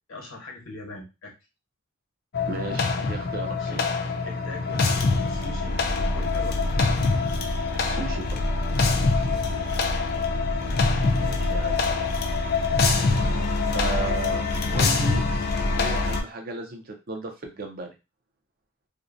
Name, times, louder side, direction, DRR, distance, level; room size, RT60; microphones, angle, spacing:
voice 1, 0.1-1.3 3.5-3.9 4.2-4.8 5.1-7.0 8.9-9.7, left 1 dB, 70° left, 0 dB, 0.9 m, -41 dB
sound 1, 2.3-16.2, left 3 dB, 45° left, 0.4 m, -24 dB
voice 2, 2.5-3.8 7.8-8.4 11.2-11.8 13.7-14.4 14.7-15.2 15.7-17.9, right 3 dB, 45° right, 3 dB, 0.5 m, -34 dB
2.6 x 2.1 x 2.5 m, 0.27 s
head